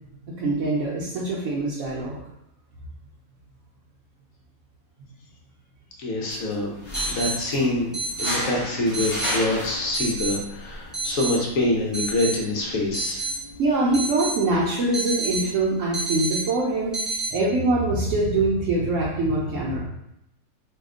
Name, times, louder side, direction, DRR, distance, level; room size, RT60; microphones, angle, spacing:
voice 1, 0.4-2.2 10.0-10.1 13.6-17.0 17.3-19.8, right 2 dB, 70° right, -5 dB, 0.9 m, -23 dB
voice 2, 6.0-6.7 7.1-7.9 8.2-13.3, left 2 dB, 70° left, -2 dB, 1.0 m, -25 dB
sound 1, 6.3-6.4 6.9-7.3 7.9-8.3 8.9-9.3 9.9-10.4 10.9-11.3 11.9-12.3 12.9-13.3 13.9-14.3 14.9-15.5 15.9-16.4 16.9-17.3, right 3 dB, ahead, 0.4 m, -28 dB
sound 2, 6.7-13.7, left 1 dB, 45° left, 1.2 m, -34 dB
2.8 x 2.2 x 3.5 m, 0.80 s
omnidirectional pair, 1.5 m